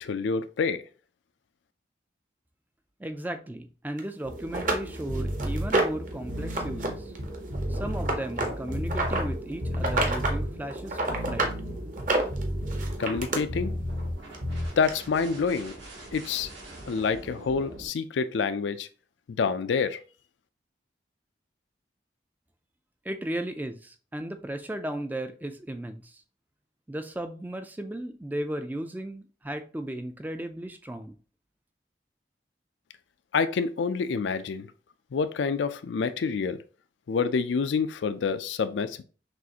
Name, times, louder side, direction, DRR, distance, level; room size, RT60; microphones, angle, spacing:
voice 1, 0.0-0.8 13.0-13.7 14.8-15.7 16.1-16.5 16.9-18.9 19.4-20.0 33.3-34.7 35.1-36.6 37.1-39.0, left 5 dB, 80° left, 0.4 m, -27 dB
voice 2, 3.0-7.1 7.7-11.5 23.1-26.1 26.9-31.2, right 1 dB, 10° right, 0.3 m, -35 dB
sound 1, 4.0-4.1 4.5-6.1 6.5-6.9 7.1-9.2 9.7-10.4 10.7-11.6 12.0-13.4 14.3-14.4 14.9-15.0, right 2 dB, 45° right, 0.8 m, -28 dB
sound 2, 4.2-17.9, right 1 dB, 80° right, 1.5 m, -42 dB
sound 3, 5.1-5.7 6.2-9.4 9.6-10.5 11.0-14.2 14.4-14.7, equal, 65° right, 1.1 m, -32 dB
6.2 x 2.5 x 2.8 m
head